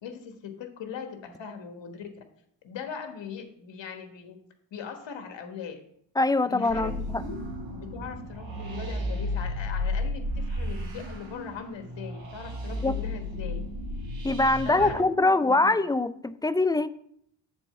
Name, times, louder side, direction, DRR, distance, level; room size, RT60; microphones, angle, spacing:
voice 1, 0.0-2.2 2.6-4.4 4.7-5.8 6.4-6.9 7.2-7.4 7.8-13.6 14.6-15.8, left 6 dB, 65° left, 6 dB, 1.4 m, -40 dB
voice 2, 6.2-7.2 12.8-13.0 14.2-16.9, left 2 dB, 10° left, 14 dB, 0.3 m, -23 dB
sound 1, 6.7-14.9, left 1 dB, 70° right, 1.8 m, -33 dB
7.2 x 4.2 x 6.6 m, 0.68 s
supercardioid pair, 55°, 47 cm